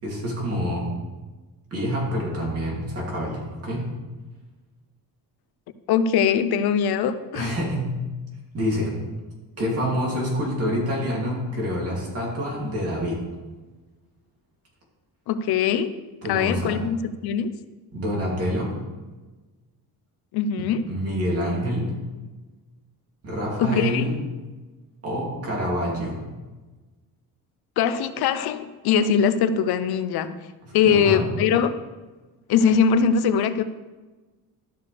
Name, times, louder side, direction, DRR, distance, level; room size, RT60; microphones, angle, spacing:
voice 1, 0.0-0.9 1.7-3.9 7.3-7.9 8.5-9.0 9.6-13.2 16.2-16.8 17.9-18.7 20.9-21.9 23.2-24.2 25.0-26.2 30.9-31.3, equal, 35° right, -3 dB, 2.9 m, -27 dB
voice 2, 5.9-7.5 15.3-16.0 16.3-17.6 20.3-20.8 23.6-24.1 27.8-30.3 30.7-31.8 32.5-33.6, left 7 dB, 70° left, 12 dB, 0.7 m, -21 dB
13.0 x 6.6 x 3.4 m, 1.2 s
cardioid pair, 160°, 39 cm